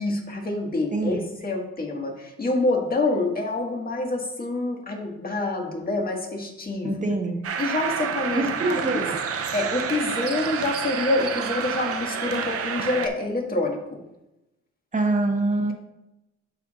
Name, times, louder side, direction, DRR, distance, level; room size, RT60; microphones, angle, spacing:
voice 1, 0.0-6.9 7.6-9.0 9.5-14.0, left 2 dB, 30° left, 0 dB, 1.7 m, -27 dB
voice 2, 0.9-1.2 6.8-7.4 8.3-9.2 14.9-15.7, right 2 dB, 25° right, 4 dB, 1.2 m, -25 dB
sound 1, 7.4-13.1, right 7 dB, 50° right, 0.6 m, -29 dB
12.0 x 4.7 x 2.5 m, 0.93 s
cardioid pair, 90°, 30 cm